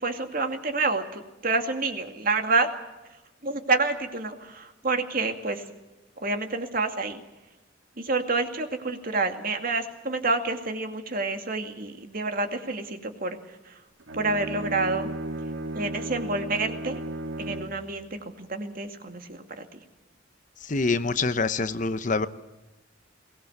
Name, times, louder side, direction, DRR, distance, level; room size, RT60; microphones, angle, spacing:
voice 1, 0.0-2.7 3.4-5.7 6.2-7.2 8.0-13.8 14.1-15.1 15.7-17.0 17.4-19.8, right 3 dB, 45° right, 6 dB, 2.3 m, -28 dB
Bowed string instrument, 14.0-17.9, right 1 dB, 75° right, 1.9 m, -34 dB
voice 2, 20.6-22.3, left 3 dB, 40° left, 12 dB, 0.8 m, -25 dB
22.5 x 18.5 x 8.0 m, 1.1 s
head